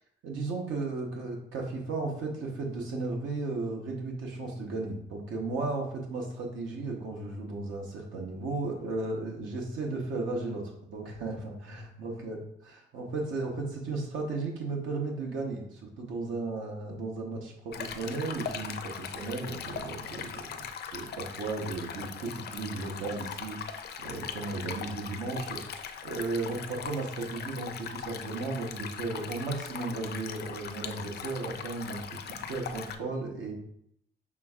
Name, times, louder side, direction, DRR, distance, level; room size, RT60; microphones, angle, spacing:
voice 1, 0.2-12.4 12.9-20.4 20.9-33.5, right 3 dB, 80° right, 0 dB, 1.0 m, -35 dB
Stream, 17.7-33.0, left 7 dB, 55° left, 0.5 m, -40 dB
6.0 x 3.4 x 2.4 m, 0.72 s
cardioid pair, 90°, 20 cm